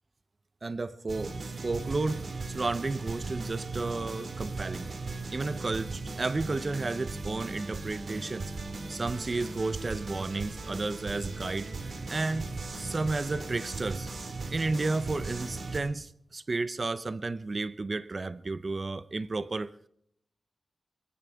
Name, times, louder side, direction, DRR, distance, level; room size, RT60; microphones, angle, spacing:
voice 1, 0.6-4.9 5.3-8.5 8.9-11.7 12.1-12.5 12.8-14.1 14.5-19.7, right 3 dB, 40° right, 0.5 m, -32 dB
sound 1, 1.1-15.8, right 3 dB, 55° right, 2.3 m, -38 dB
22.0 x 15.5 x 3.5 m
wide cardioid pair, 100°, 0 cm